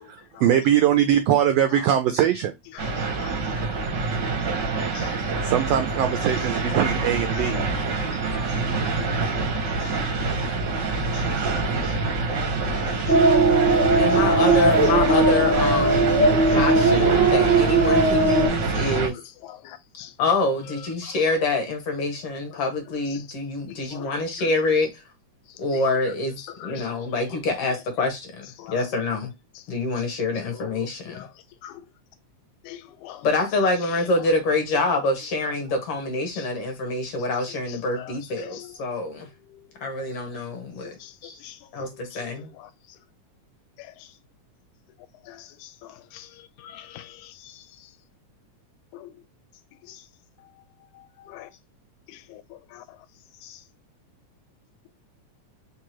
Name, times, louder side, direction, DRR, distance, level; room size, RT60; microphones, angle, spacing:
voice 1, 0.4-2.5 5.4-7.6, right 10 dB, 90° right, 1.4 m, -21 dB
voice 2, 2.7-3.3 3.9-4.1 4.9-5.5 7.3-7.6 8.1-8.5 9.0-9.5 9.8-10.4 11.1-11.9 12.2-12.3 12.7-13.7 14.3-14.4 15.8-16.0 16.2-16.6 16.9-17.3 18.2-18.5 19.4-20.1 21.0-21.1 23.1-23.2 23.7-24.5 26.4-27.1 28.6-28.8 30.4-30.7 31.1-31.3 31.6-31.8 32.6-33.3 36.3-36.5 37.7-38.1 38.4-38.7 39.5-40.0 40.8-41.1 41.4-41.6 42.1-42.2 42.5-42.7 43.8-44.1 45.3-47.6 48.9-49.1 49.9-50.0 51.0-51.5 52.1-52.8 53.4-53.6, left 12 dB, 85° left, 2.0 m, -44 dB
sound 1, 2.8-19.1, right 3 dB, 75° right, 1.0 m, -26 dB
sound 2, 13.1-18.5, right 2 dB, 40° right, 0.6 m, -18 dB
voice 3, 14.0-16.1 16.5-19.2 20.2-24.9 25.6-29.3 29.7-31.2 33.2-39.3 39.8-41.4 41.7-42.5, left 3 dB, 60° left, 1.7 m, -26 dB
4.8 x 2.6 x 2.9 m
omnidirectional pair, 3.4 m